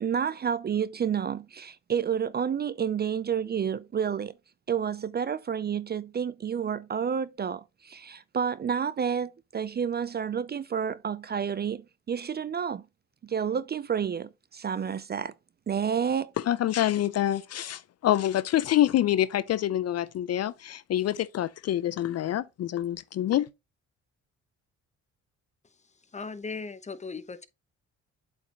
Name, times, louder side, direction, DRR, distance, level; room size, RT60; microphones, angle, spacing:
voice 1, 0.0-4.3 4.7-12.8 13.2-15.3 15.7-16.3, right 7 dB, 35° right, 0.5 m, -30 dB
voice 2, 16.5-23.5, left 12 dB, 55° left, 0.5 m, -26 dB
voice 3, 26.1-27.5, left 4 dB, 25° left, 1.0 m, -37 dB
8.2 x 5.3 x 2.9 m
cardioid pair, 90°, 30 cm